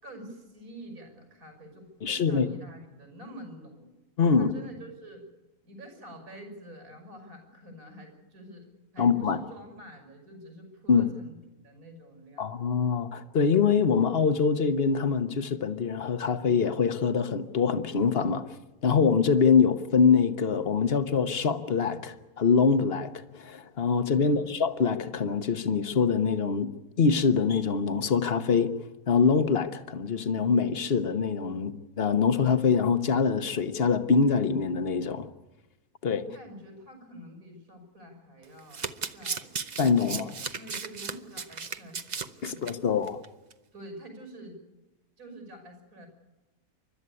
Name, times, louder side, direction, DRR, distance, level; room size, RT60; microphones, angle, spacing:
voice 1, 0.0-3.9 4.3-5.2 5.6-11.4 11.6-12.5 24.2-24.6 36.2-38.8 39.1-39.5 40.0-43.0 43.7-44.6 45.2-46.1, equal, 80° right, 6.4 m, -47 dB
voice 2, 2.0-2.5 4.2-4.5 9.0-9.4 10.9-11.1 12.4-18.5 18.8-28.7 29.1-35.3 36.0-36.2 39.8-40.3 42.4-43.2, left 5 dB, 45° left, 1.3 m, -24 dB
Domestic sounds home sounds, 38.4-42.7 43.1-43.3 43.5-43.6, right 5 dB, 35° right, 0.8 m, -35 dB
29.5 x 12.5 x 9.7 m
omnidirectional pair, 1.6 m